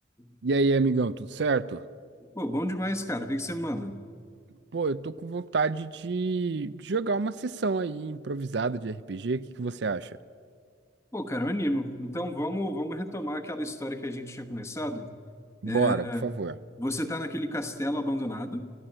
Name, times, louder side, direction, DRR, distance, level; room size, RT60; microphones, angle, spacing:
voice 1, 0.4-1.8 4.7-10.2 15.6-16.6, right 3 dB, 65° right, 14 dB, 0.5 m, -28 dB
voice 2, 2.3-4.0 11.1-15.1 15.6-16.3 16.8-18.7, equal, 15° left, 8 dB, 1.2 m, -31 dB
29.0 x 14.0 x 8.9 m, 2.2 s
head